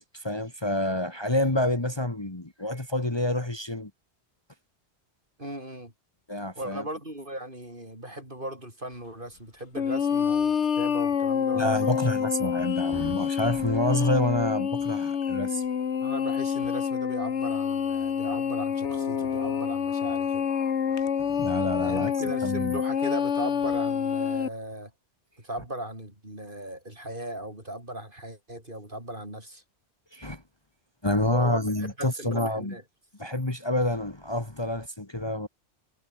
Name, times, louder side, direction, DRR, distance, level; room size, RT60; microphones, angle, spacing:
voice 1, 0.0-3.9 6.3-6.8 11.5-15.6 21.2-22.1 22.4-22.8 30.1-30.4 31.0-32.7 33.2-35.5, left 1 dB, 20° left, 2.1 m, -28 dB
voice 2, 5.4-5.9 6.6-11.9 16.0-20.5 21.8-24.9 25.4-29.6 31.3-32.8, right 1 dB, 50° right, 8.0 m, -37 dB
sound 1, 9.8-24.5, left 7 dB, 80° left, 1.5 m, -27 dB
omnidirectional pair, 1.2 m